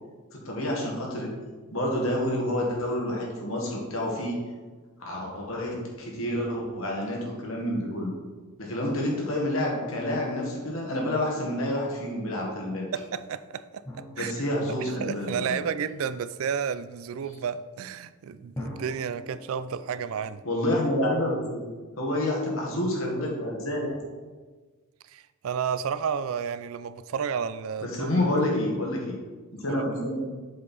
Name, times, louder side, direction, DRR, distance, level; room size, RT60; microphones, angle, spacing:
voice 1, 0.4-1.3 1.7-4.4 5.0-8.1 8.6-12.9 14.2-15.5 20.4-21.7 22.0-24.0 27.8-29.2 29.5-30.3, left 1 dB, 70° left, -1 dB, 1.7 m, -28 dB
voice 2, 12.9-20.4 25.0-28.5 29.7-29.9, right 7 dB, 70° right, 14 dB, 0.3 m, -32 dB
sound 1, 13.8-16.2 18.6-21.5, left 1 dB, 15° left, 1.1 m, -44 dB
7.4 x 4.6 x 4.2 m, 1.4 s
head